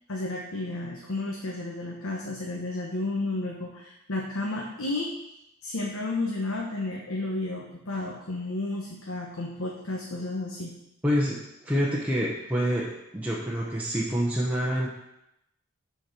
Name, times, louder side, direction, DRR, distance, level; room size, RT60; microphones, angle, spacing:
voice 1, 0.1-5.1 5.6-10.7, left 2 dB, 65° left, -2 dB, 1.2 m, -32 dB
voice 2, 11.0-12.9 13.1-14.9, equal, 5° right, -5 dB, 0.9 m, -27 dB
8.0 x 4.5 x 6.1 m, 0.84 s
head